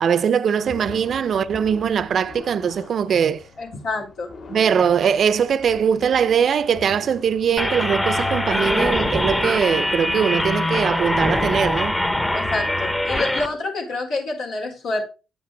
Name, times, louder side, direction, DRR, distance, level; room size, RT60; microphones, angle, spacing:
voice 1, 0.0-3.4 4.5-12.0, right 7 dB, 55° right, 0.5 m, -21 dB
sound 1, 0.6-13.5, left 3 dB, 65° left, 3.9 m, -41 dB
voice 2, 3.6-4.3 12.3-15.0, left 2 dB, 85° left, 4.8 m, -27 dB
sound 2, 7.6-13.5, left 1 dB, 15° left, 0.9 m, -23 dB
9.6 x 8.5 x 3.4 m
cardioid pair, 90°, 0 cm